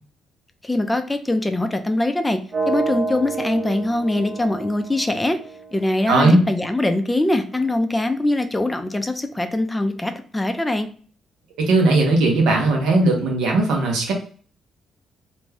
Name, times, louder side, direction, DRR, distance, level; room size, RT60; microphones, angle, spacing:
voice 1, 0.6-2.4 2.7-5.4 5.7-10.9, left 1 dB, 10° left, 7 dB, 0.4 m, -22 dB
sound 1, 2.5-6.5, right 3 dB, 50° right, 0.9 m, -29 dB
voice 2, 6.1-6.4 11.6-14.1, right 2 dB, 90° right, 0 dB, 0.9 m, -17 dB
2.5 x 2.2 x 3.3 m, 0.44 s
cardioid pair, 90°, 0 cm